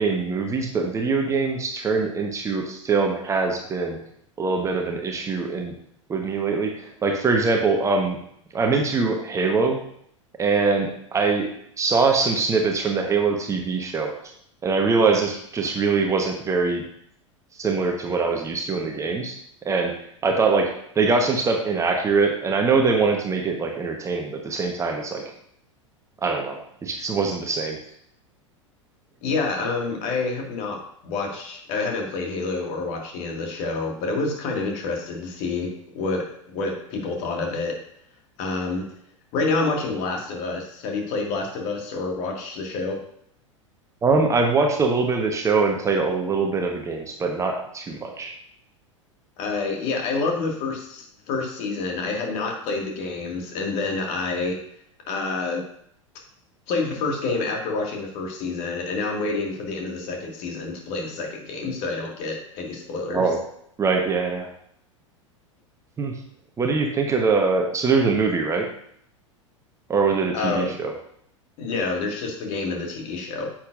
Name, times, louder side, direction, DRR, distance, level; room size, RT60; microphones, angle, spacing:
voice 1, 0.0-4.0 4.4-5.7 6.1-8.2 8.5-9.8 10.4-11.5 11.8-14.1 14.6-16.8 17.6-19.4 19.6-19.9 20.2-20.7 20.9-25.2 26.2-27.8 44.0-48.3 63.1-63.4 63.8-64.5 66.0-66.1 66.6-68.7 69.9-70.9, right 4 dB, 20° right, 3 dB, 1.1 m, -23 dB
voice 2, 29.2-30.8 31.0-37.8 38.4-38.8 39.3-43.0 49.4-54.6 55.1-55.6 56.7-63.2 70.3-70.7 71.6-73.5, left 3 dB, 45° left, 1 dB, 2.0 m, -28 dB
10.0 x 7.4 x 2.5 m, 0.68 s
figure-of-eight pair, 85°, 16 cm